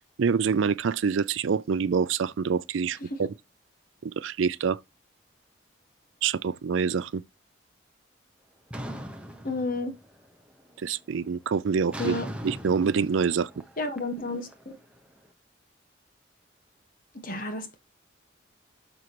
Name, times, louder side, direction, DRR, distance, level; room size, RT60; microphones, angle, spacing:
voice 1, 0.2-3.3 4.0-4.8 6.2-7.2 10.8-12.1 12.4-13.5, right 6 dB, 90° right, 0.4 m, -26 dB
sound 1, 8.7-10.3 10.6-11.0 11.9-15.0, equal, 5° right, 1.1 m, -39 dB
voice 2, 9.4-9.9 12.0-12.3 13.8-14.7 17.2-17.8, left 2 dB, 45° left, 1.3 m, -31 dB
9.5 x 6.1 x 3.0 m
head